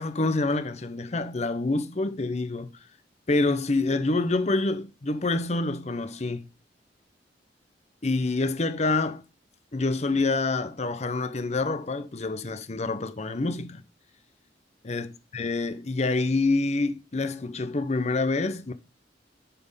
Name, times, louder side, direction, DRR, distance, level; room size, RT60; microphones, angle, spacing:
voice 1, 0.0-2.7 3.3-6.5 8.0-9.2 9.7-13.8 14.8-15.1 15.3-18.7, left 3 dB, 40° left, 0.7 m, -27 dB
8.8 x 4.4 x 5.5 m
head